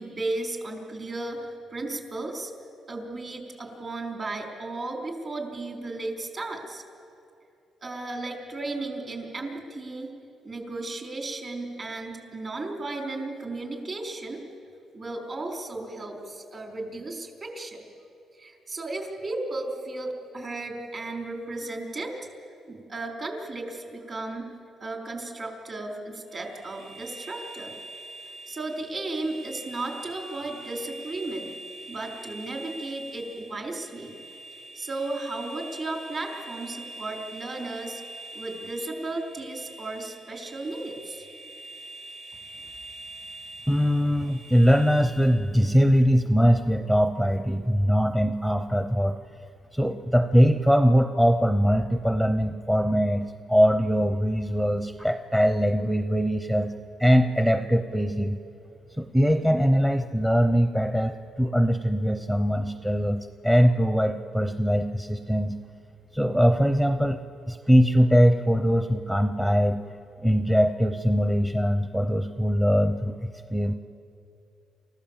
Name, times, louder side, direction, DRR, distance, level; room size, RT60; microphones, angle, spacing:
voice 1, 0.0-2.5 2.9-6.8 7.8-10.1 10.4-14.4 14.9-17.9 18.4-22.1 22.7-24.5 24.8-27.7 28.5-31.5 31.9-34.2 34.5-38.0 38.3-41.3, right 2 dB, 40° right, 1 dB, 4.4 m, -34 dB
sound 1, 26.3-45.5, right 2 dB, 75° right, 4.7 m, -44 dB
voice 2, 43.7-49.2 49.7-56.7 57.0-58.4 59.0-65.5 66.1-67.2 67.5-69.8 70.2-73.2 73.5-73.7, equal, 5° right, 8 dB, 0.8 m, -22 dB
28.5 x 15.0 x 7.4 m, 2.6 s
cardioid pair, 90°, 0 cm